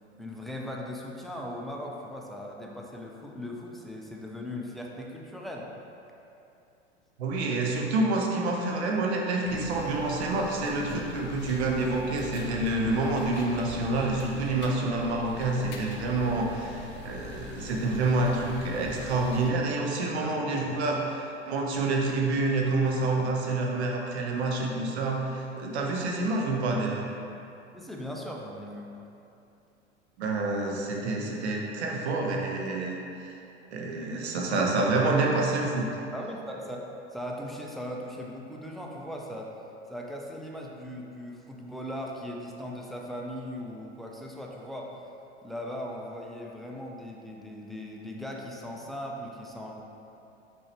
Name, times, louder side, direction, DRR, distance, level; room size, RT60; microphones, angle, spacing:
voice 1, 0.2-5.7 20.2-20.7 27.7-28.9 36.1-39.5 39.9-44.9 45.4-49.8, equal, ahead, -2 dB, 0.4 m, -39 dB
voice 2, 7.2-27.1 30.2-33.0 33.7-35.9, right 2 dB, 65° right, -1 dB, 1.0 m, -28 dB
sound 1, 9.4-19.5, left 3 dB, 30° left, 0.7 m, -42 dB
6.1 x 4.7 x 3.3 m, 2.7 s
figure-of-eight pair, 90°, 35 cm